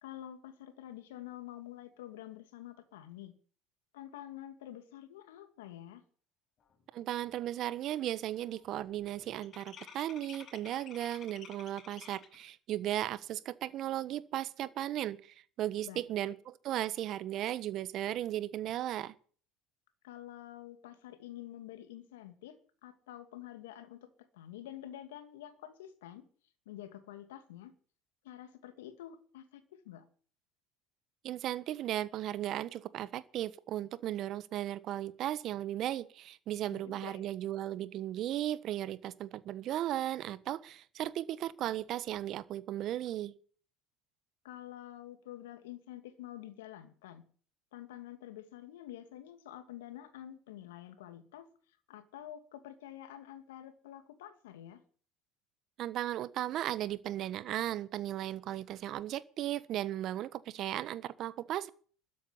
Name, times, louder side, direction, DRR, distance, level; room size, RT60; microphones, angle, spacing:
voice 1, 0.0-3.4 3.9-6.0 15.8-16.0 20.0-24.1 24.3-26.3 26.7-27.7 28.2-30.0 36.7-37.3 44.4-47.2 47.7-51.5 51.9-54.8, left 12 dB, 85° left, 2.5 m, -48 dB
sound 1, 6.8-6.9 7.2-7.6 7.9-12.5, left 7 dB, 45° left, 5.5 m, -53 dB
voice 2, 6.9-19.1 31.2-43.3 55.8-61.7, right 12 dB, 55° right, 1.3 m, -36 dB
13.5 x 9.3 x 9.9 m
hypercardioid pair, 85°, 0 cm